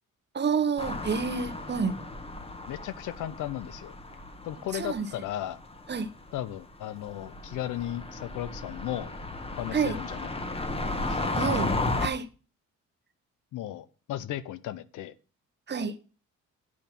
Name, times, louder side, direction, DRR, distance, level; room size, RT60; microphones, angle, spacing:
voice 1, 0.3-1.9 4.7-5.1 5.9-6.1 9.7-10.0 11.3-11.7 12.0-12.3 15.7-15.9, right 6 dB, 35° right, 0.9 m, -28 dB
sound 1, 0.8-12.1, left 2 dB, 20° left, 1.2 m, -34 dB
voice 2, 2.7-4.0 4.4-5.6 6.3-9.1 9.6-10.3 11.1-11.2 13.5-15.1, left 12 dB, 80° left, 0.7 m, -35 dB
8.7 x 5.3 x 5.9 m
cardioid pair, 90°, 30 cm